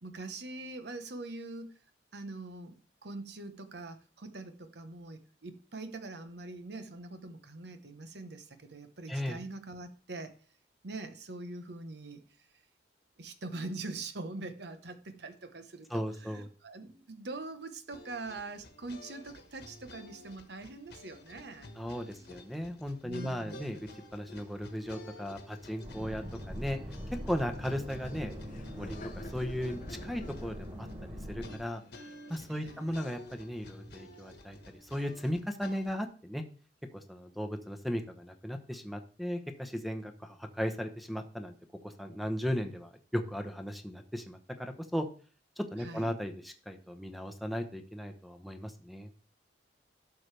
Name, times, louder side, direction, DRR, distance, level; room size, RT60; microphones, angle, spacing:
voice 1, 0.0-1.7 2.1-10.4 10.8-12.5 13.2-21.7 23.0-23.8 32.5-33.0 45.8-46.1, right 2 dB, 65° right, 9 dB, 1.0 m, -43 dB
voice 2, 15.9-16.5 21.8-26.8 27.2-28.3 28.7-30.9 31.3-31.8 32.3-36.4 36.9-41.5 41.8-45.1 45.6-49.1, equal, ahead, 7 dB, 0.9 m, -36 dB
sound 1, 17.9-36.0, left 1 dB, 65° left, 1.5 m, -52 dB
sound 2, 25.8-31.6, equal, 40° right, 2.7 m, -42 dB
Laughter, 27.0-33.3, left 1 dB, 45° left, 0.7 m, -52 dB
12.0 x 6.7 x 3.3 m, 0.40 s
head